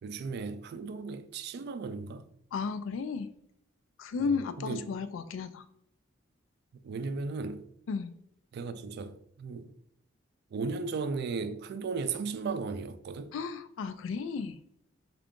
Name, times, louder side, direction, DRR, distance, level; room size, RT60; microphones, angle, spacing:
voice 1, 0.0-2.3 4.2-4.9 6.8-7.7 8.5-9.7 10.5-13.3, right 4 dB, 60° right, 0.3 m, -36 dB
voice 2, 2.5-3.3 4.0-5.6 7.9-8.2 13.3-14.6, left 5 dB, 80° left, 0.3 m, -34 dB
3.7 x 2.4 x 3.6 m
head